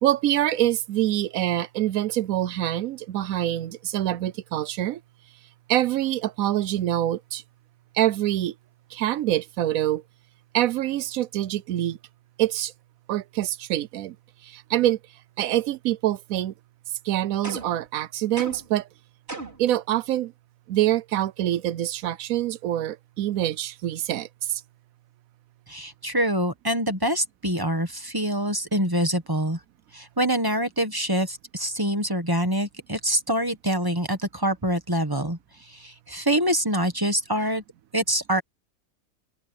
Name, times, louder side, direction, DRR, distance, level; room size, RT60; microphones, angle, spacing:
voice 1, 0.0-5.0 5.7-7.4 7.9-8.5 8.9-10.0 10.5-12.0 12.4-12.7 13.1-14.2 14.4-15.0 15.4-16.5 17.0-18.9 19.6-20.3 20.7-24.6, right 13 dB, 85° right, 1.0 m, -25 dB
sound 1, 17.4-17.9 18.4-18.8 19.3-19.7, right 3 dB, 45° right, 4.6 m, -36 dB
voice 2, 25.7-29.6 29.9-35.4 35.7-37.6 37.9-38.4, equal, 15° right, 1.5 m, -25 dB
open air
omnidirectional pair, 1.4 m